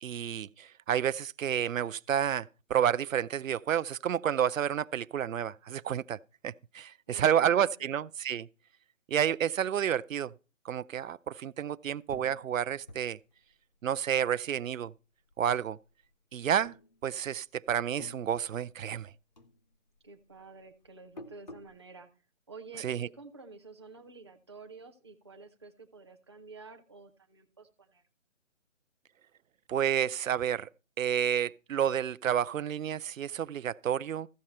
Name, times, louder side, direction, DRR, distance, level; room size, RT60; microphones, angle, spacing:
voice 1, 0.0-6.2 6.4-8.5 9.1-10.3 10.6-13.2 13.8-14.9 15.4-15.8 16.3-16.7 17.0-19.1 22.8-23.1 29.7-30.7 31.0-34.3, right 9 dB, 80° right, 0.6 m, -30 dB
voice 2, 7.1-8.0 20.0-22.1 22.5-28.0, right 3 dB, 20° right, 0.5 m, -50 dB
sound 1, 12.1-15.0 15.3-16.1 16.6-17.5 17.8-19.1 19.4-21.8, left 1 dB, 35° left, 0.4 m, -52 dB
14.0 x 6.6 x 4.3 m
hypercardioid pair, 160°, 39 cm